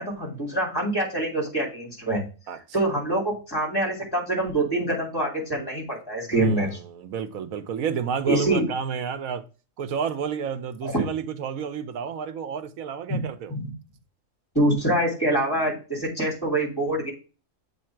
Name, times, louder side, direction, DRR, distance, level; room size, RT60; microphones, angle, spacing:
voice 1, 0.0-2.2 2.7-6.8 8.3-8.7 10.8-11.0 13.1-13.2 13.5-13.7 14.5-17.1, right 1 dB, 15° left, 2.6 m, -25 dB
voice 2, 2.5-2.9 6.3-9.4 9.8-13.5, right 7 dB, 85° right, 1.2 m, -31 dB
7.5 x 3.2 x 4.4 m
omnidirectional pair, 1.4 m